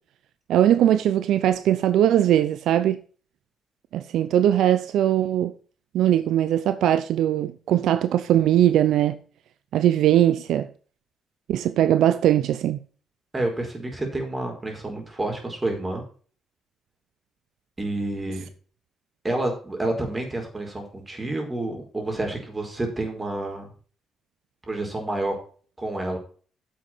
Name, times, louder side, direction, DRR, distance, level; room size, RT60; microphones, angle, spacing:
voice 1, 0.5-3.0 3.9-5.5 5.9-9.2 9.7-10.7 11.5-12.8, right 11 dB, 80° right, 0.6 m, -20 dB
voice 2, 13.3-16.0 17.8-18.4 19.2-23.7 24.7-25.4 25.8-26.2, right 2 dB, 20° right, 4.8 m, -29 dB
10.0 x 7.5 x 4.6 m
cardioid pair, 90°, 0 cm